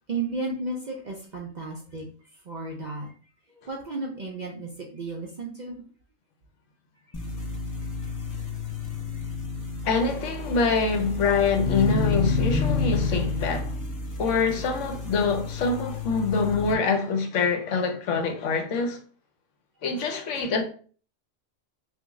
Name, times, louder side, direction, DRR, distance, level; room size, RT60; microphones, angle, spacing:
voice 1, 0.1-2.1 2.5-3.1 3.5-5.8 20.0-20.1, right 3 dB, 55° right, 0.5 m, -33 dB
sound 1, 7.1-16.7, left 4 dB, 30° left, 0.3 m, -30 dB
voice 2, 9.8-13.8 14.2-19.0 19.8-20.6, left 4 dB, 75° left, 1.0 m, -25 dB
3.0 x 2.5 x 3.5 m
omnidirectional pair, 1.3 m